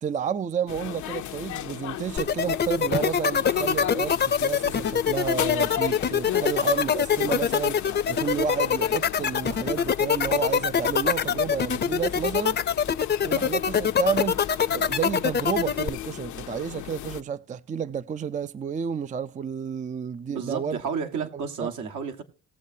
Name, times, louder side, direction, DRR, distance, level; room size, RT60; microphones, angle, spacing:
voice 1, 0.0-7.8 8.1-12.6 13.2-14.5 14.7-20.8 21.2-21.7, right 7 dB, 25° right, 0.4 m, -31 dB
sound 1, 0.7-17.2, left 12 dB, 75° left, 0.7 m, -36 dB
sound 2, 2.2-15.9, left 7 dB, 35° left, 0.6 m, -23 dB
voice 2, 20.3-22.2, right 6 dB, 75° right, 1.6 m, -31 dB
18.5 x 7.3 x 2.7 m
cardioid pair, 90°, 30 cm